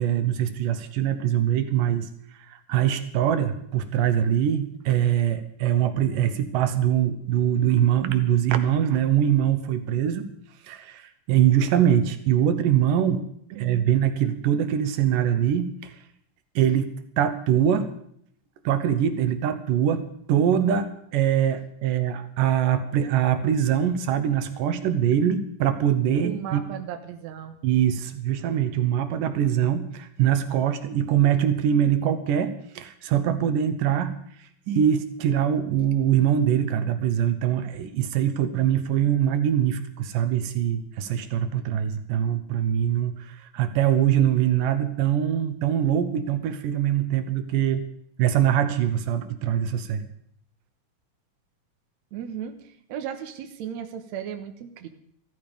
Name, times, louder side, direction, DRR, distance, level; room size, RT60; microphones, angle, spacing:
voice 1, 0.0-2.1 2.5-10.3 10.6-13.3 13.5-16.0 16.6-17.9 18.6-20.0 20.3-26.6 27.6-34.2 34.7-47.8 48.2-50.0, right 10 dB, 85° right, 10 dB, 2.6 m, -23 dB
voice 2, 13.5-13.9 26.2-27.6 52.1-54.9, right 9 dB, 65° right, 6 dB, 2.3 m, -36 dB
14.5 x 14.5 x 5.2 m, 0.67 s
omnidirectional pair, 3.7 m